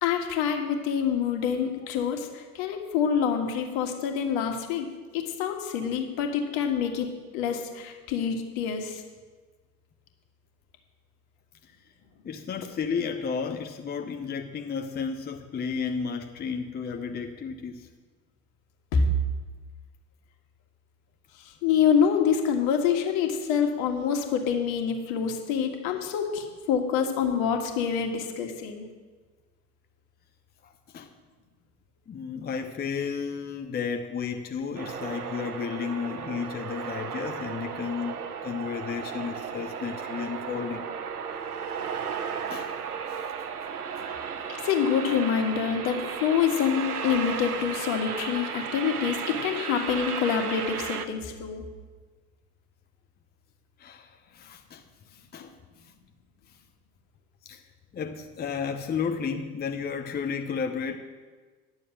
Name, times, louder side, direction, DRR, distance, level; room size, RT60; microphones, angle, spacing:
voice 1, 0.0-4.9 5.1-7.1 7.3-9.0 18.9-19.1 21.4-28.9 44.6-51.6, left 7 dB, 60° left, 4 dB, 1.8 m, -26 dB
voice 2, 12.2-17.9 30.6-31.1 32.1-40.9 42.5-42.7 43.1-43.2 53.8-54.8 55.1-55.6 57.4-57.6 57.9-61.0, left 6 dB, 20° left, 5 dB, 0.8 m, -33 dB
sound 1, 34.8-51.1, right 7 dB, 90° right, 0.7 m, -35 dB
11.0 x 7.0 x 7.7 m, 1.4 s
figure-of-eight pair, 70°, 44 cm